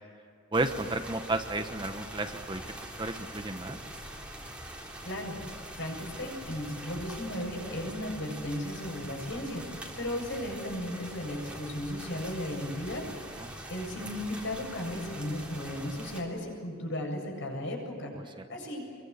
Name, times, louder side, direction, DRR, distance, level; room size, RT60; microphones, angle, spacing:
sound 1, 0.5-16.2, right 1 dB, 5° right, 3.5 m, -43 dB
voice 1, 0.5-2.6 3.0-3.8 13.4-13.5, right 2 dB, 20° right, 7 dB, 1.1 m, -32 dB
voice 2, 5.0-5.4 5.8-13.1 13.7-18.1 18.5-18.8, left 1 dB, 55° left, 1 dB, 7.8 m, -35 dB
25.5 x 23.0 x 8.4 m, 2.3 s
head